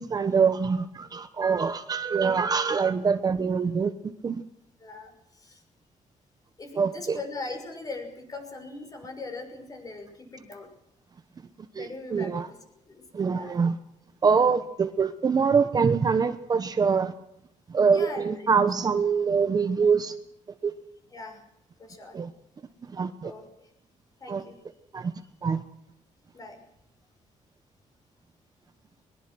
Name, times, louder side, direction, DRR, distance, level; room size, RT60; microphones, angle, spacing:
voice 1, 0.0-4.4 6.8-7.2 11.8-12.5 13.1-13.8 14.2-17.1 17.7-20.1 20.6-20.7 22.1-22.3 22.9-23.3 24.3-24.4 24.9-25.1 25.4-25.6, right 5 dB, 30° right, 10 dB, 1.1 m, -24 dB
voice 2, 4.8-5.6 6.6-10.7 11.8-12.6 12.9-13.0 13.3-13.6 17.9-18.5 21.1-21.4 21.8-22.1 23.2-23.7 24.2-24.6 25.2-25.3 26.3-26.6, left 3 dB, 30° left, 5 dB, 6.1 m, -40 dB
22.5 x 22.0 x 6.3 m, 0.78 s
cardioid pair, 160°, 13 cm